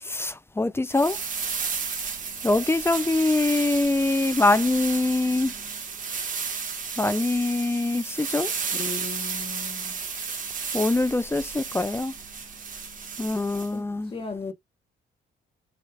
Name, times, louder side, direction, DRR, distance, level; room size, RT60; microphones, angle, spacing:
voice 1, 0.0-1.2 2.4-5.5 7.0-8.5 10.7-12.1 13.2-14.1, left 2 dB, 10° left, 0.4 m, -24 dB
sound 1, 0.9-13.7, right 5 dB, 40° right, 1.2 m, -33 dB
voice 2, 8.7-10.0 13.7-14.5, left 4 dB, 30° left, 1.0 m, -36 dB
4.7 x 2.4 x 4.7 m
cardioid pair, 90°, 20 cm